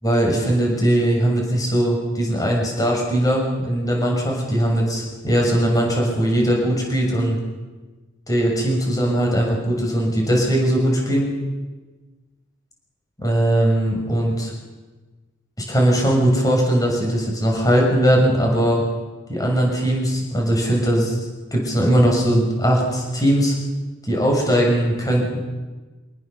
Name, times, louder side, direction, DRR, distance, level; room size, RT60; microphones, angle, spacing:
voice 1, 0.0-7.4 8.3-11.3 13.2-14.5 15.7-18.8 19.3-21.2 21.5-23.5 24.1-25.4, right 1 dB, 20° left, -1 dB, 6.6 m, -19 dB
27.0 x 18.5 x 6.9 m, 1.3 s
head